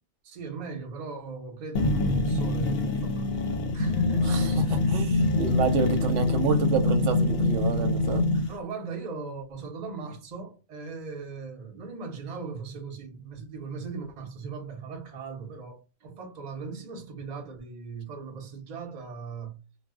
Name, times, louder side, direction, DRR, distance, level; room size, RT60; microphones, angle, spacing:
voice 1, 0.2-3.4 3.7-5.5 8.5-19.6, right 5 dB, 40° right, 0.7 m, -39 dB
sound 1, 1.7-8.5, left 2 dB, 60° left, 0.7 m, -25 dB
voice 2, 4.9-8.2, right 4 dB, 85° right, 1.0 m, -28 dB
2.4 x 2.1 x 3.5 m
omnidirectional pair, 1.3 m